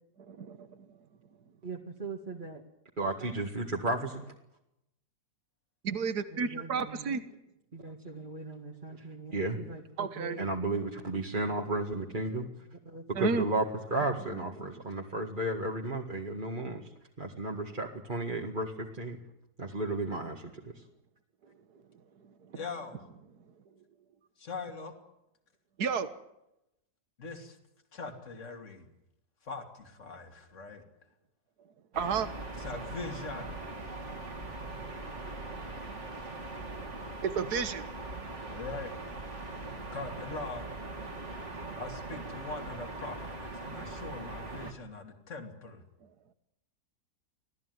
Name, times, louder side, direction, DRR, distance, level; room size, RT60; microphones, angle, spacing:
voice 1, 0.3-0.9 5.8-7.2 10.0-10.4 13.2-13.5 25.8-26.1 32.0-32.3 37.2-37.9, right 6 dB, 80° right, 10 dB, 1.9 m, -31 dB
voice 2, 1.6-2.6 3.0-4.3 6.4-7.1 7.7-16.9 17.2-19.2 19.6-20.8, right 2 dB, 30° right, 0 dB, 2.0 m, -34 dB
voice 3, 22.5-23.1 24.4-24.9 27.2-27.6 27.9-28.9 29.4-30.8 32.6-33.6 38.5-38.9 39.9-40.7 41.8-45.8, left 3 dB, 50° left, 4 dB, 3.1 m, -41 dB
sound 1, 31.9-44.7, right 2 dB, 45° right, 2.9 m, -41 dB
26.0 x 17.0 x 9.5 m, 0.86 s
omnidirectional pair, 1.7 m